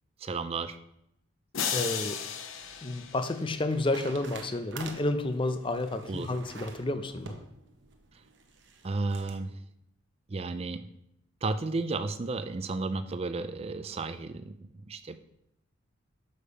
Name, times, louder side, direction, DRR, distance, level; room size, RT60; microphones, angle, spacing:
voice 1, 0.2-0.8 6.1-6.3 8.8-9.5 10.3-10.9 11.4-14.5 14.9-15.2, right 3 dB, 30° right, 11 dB, 0.4 m, -33 dB
sound 1, 1.5-3.9, left 7 dB, 75° left, 0.7 m, -35 dB
voice 2, 1.7-2.2 2.8-7.4, left 2 dB, 25° left, 9 dB, 0.5 m, -30 dB
sound 2, 2.4-9.4, right 3 dB, 60° right, 0.9 m, -48 dB
6.6 x 5.5 x 5.1 m, 0.79 s
head